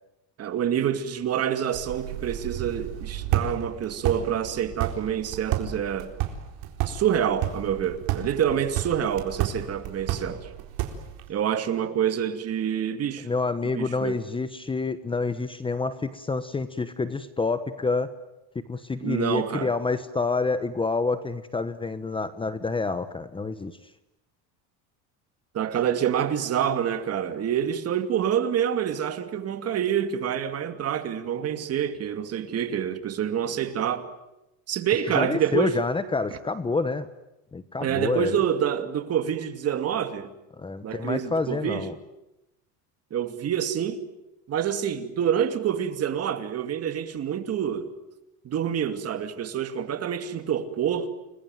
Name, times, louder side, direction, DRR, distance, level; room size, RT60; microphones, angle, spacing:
voice 1, 0.4-6.1 6.8-10.5 11.3-13.3 13.7-14.2 19.0-19.7 25.5-34.1 34.7-35.8 36.3-36.4 37.8-40.3 40.8-41.9 43.1-44.0 44.5-47.9 48.4-51.1, right 9 dB, 40° right, 2.6 m, -27 dB
sound 1, 1.7-11.3, right 11 dB, 70° right, 4.2 m, -32 dB
voice 2, 13.2-18.1 18.5-23.7 35.1-37.1 37.5-38.4 40.6-41.9, left 3 dB, 15° left, 1.1 m, -28 dB
29.5 x 21.5 x 9.1 m
cardioid pair, 140°, 38 cm